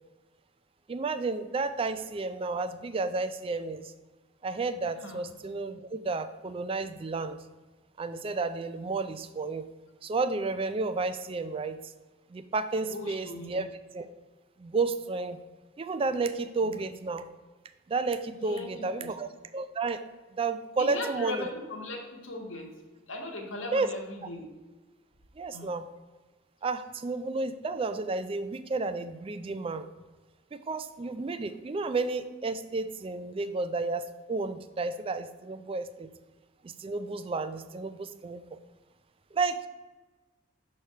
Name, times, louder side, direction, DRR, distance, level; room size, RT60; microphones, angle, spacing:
voice 1, 0.9-3.9 4.4-7.4 8.0-9.7 10.0-11.8 12.3-13.7 13.9-14.1 14.6-15.4 15.8-17.3 17.9-20.0 20.4-21.5 23.7-23.9 25.4-25.9 26.6-29.9 30.5-36.1 36.6-38.6 39.3-39.7, right 3 dB, 25° right, 11 dB, 0.3 m, -32 dB
voice 2, 12.9-13.6 16.6-16.9 18.4-19.1 20.8-22.7 23.1-24.5 25.5-25.7, left 2 dB, 70° left, 1 dB, 1.3 m, -38 dB
6.4 x 3.2 x 5.5 m, 1.2 s
head